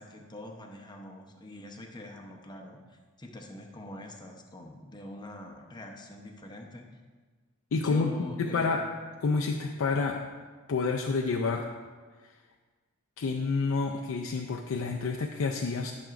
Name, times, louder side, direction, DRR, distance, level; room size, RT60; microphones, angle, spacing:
voice 1, 0.0-6.9 7.7-8.9, left 1 dB, 20° left, 2 dB, 0.8 m, -44 dB
voice 2, 7.7-8.1 8.4-8.9 9.2-10.2 10.7-11.7 12.2-12.3 13.2-15.9, left 4 dB, 65° left, 1 dB, 0.5 m, -28 dB
12.0 x 6.1 x 2.5 m, 1.4 s
head